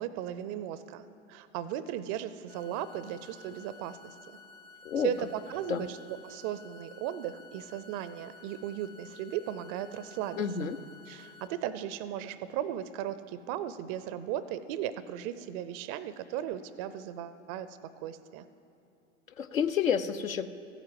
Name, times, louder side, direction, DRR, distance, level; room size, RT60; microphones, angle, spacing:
voice 1, 0.0-4.2 5.0-10.7 11.1-18.5, right 10 dB, 30° right, 14 dB, 0.4 m, -37 dB
sound 1, 2.5-11.5, left 3 dB, 65° left, 2.4 m, -53 dB
voice 2, 10.4-10.8 19.4-20.5, left 7 dB, 80° left, 12 dB, 0.7 m, -29 dB
14.5 x 9.0 x 7.6 m, 2.7 s
figure-of-eight pair, 95°, 40 cm